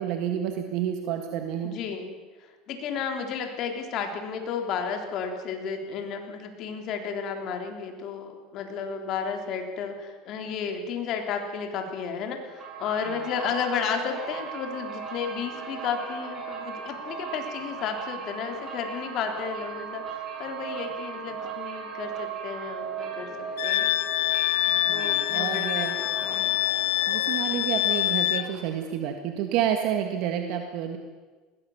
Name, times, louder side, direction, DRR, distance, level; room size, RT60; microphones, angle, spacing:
voice 1, 0.0-1.7 24.7-26.0 27.1-31.0, right 9 dB, 65° right, 5 dB, 1.8 m, -29 dB
voice 2, 1.6-23.3 23.6-23.9 24.9-26.5, left 6 dB, 50° left, 4 dB, 3.5 m, -33 dB
sound 1, 12.5-28.9, right 5 dB, 35° right, 7.8 m, -38 dB
Wind instrument woodwind instrument, 23.6-28.5, left 15 dB, 85° left, 1.2 m, -25 dB
20.5 x 18.0 x 7.2 m, 1.3 s
supercardioid pair, 130°, 0 cm